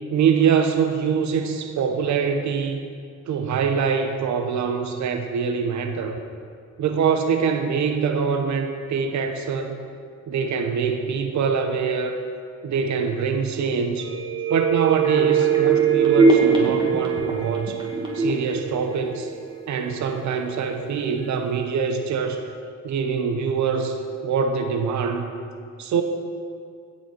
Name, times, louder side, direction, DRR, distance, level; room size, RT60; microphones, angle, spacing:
voice 1, 0.1-2.8 3.3-6.2 6.8-9.8 10.3-12.2 12.6-14.2 14.5-17.8 18.1-19.3 19.7-22.4 22.8-25.3 25.8-26.0, right 6 dB, 70° right, 6 dB, 1.0 m, -24 dB
sound 1, 14.0-19.7 20.0-20.1, right 5 dB, 15° right, 2.4 m, -21 dB
16.0 x 5.7 x 4.5 m, 2.2 s
cardioid pair, 90°, 30 cm